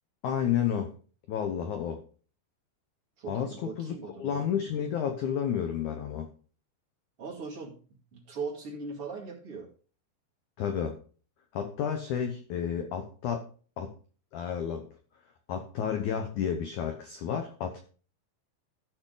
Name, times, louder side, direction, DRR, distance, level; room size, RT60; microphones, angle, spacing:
voice 1, 0.2-0.9 1.3-2.0 3.3-6.3 10.6-11.0 11.5-13.5 13.8-13.9 14.3-14.9 15.5-17.8, left 8 dB, 80° left, 6 dB, 1.7 m, -31 dB
voice 2, 3.2-4.5 7.2-7.7 8.1-9.7, right 4 dB, 40° right, -3 dB, 2.6 m, -39 dB
14.5 x 6.7 x 3.9 m, 0.40 s
omnidirectional pair, 5.0 m